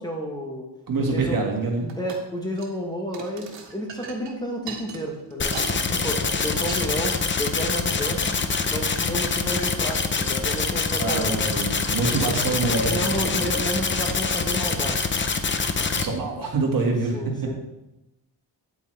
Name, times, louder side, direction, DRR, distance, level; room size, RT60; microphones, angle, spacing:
voice 1, 0.0-0.7 1.1-1.4 2.0-8.4 8.7-11.6 12.1-12.3 12.8-15.1 17.1-17.5, equal, 10° left, 0 dB, 1.1 m, -31 dB
voice 2, 0.9-1.9 5.7-6.5 11.0-12.9 15.9-17.2, right 3 dB, 50° right, 0 dB, 1.8 m, -26 dB
sound 1, 1.9-2.2 2.5-2.8 3.1-5.8 6.1-6.4 6.7-6.9 7.4-7.7, right 6 dB, 85° right, 1.5 m, -39 dB
sound 2, 5.4-16.0, left 4 dB, 30° left, 0.6 m, -25 dB
9.1 x 8.4 x 3.3 m, 0.96 s
wide cardioid pair, 150°, 42 cm